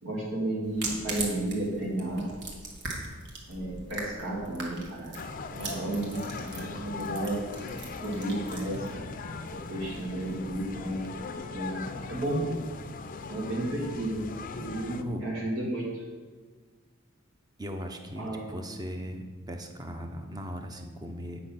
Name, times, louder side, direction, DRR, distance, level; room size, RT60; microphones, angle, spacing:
voice 1, 0.0-2.3 3.5-5.2 5.5-7.4 8.0-9.0 9.5-11.1 11.5-12.5 13.3-14.3 14.5-16.0 18.2-18.4, right 1 dB, 75° right, -4 dB, 2.1 m, -32 dB
sound 1, 0.6-11.4, right 3 dB, 55° right, 1.6 m, -41 dB
sound 2, 5.2-15.0, left 4 dB, 40° left, 0.5 m, -39 dB
voice 2, 17.6-21.4, equal, 20° right, 4 dB, 0.8 m, -38 dB
8.9 x 5.5 x 5.9 m, 1.5 s
head